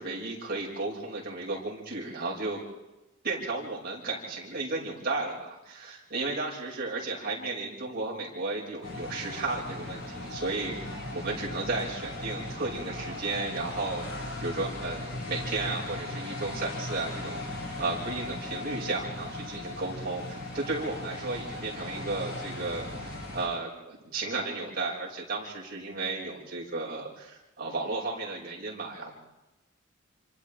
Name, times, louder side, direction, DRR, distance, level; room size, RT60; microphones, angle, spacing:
voice 1, 0.0-2.6 3.2-10.7 11.1-14.0 14.4-17.4 17.8-29.1, right 3 dB, 50° right, -4 dB, 6.2 m, -34 dB
sound 1, 8.8-23.5, left 1 dB, 90° left, 7.3 m, -38 dB
28.0 x 26.0 x 3.6 m, 1.0 s
head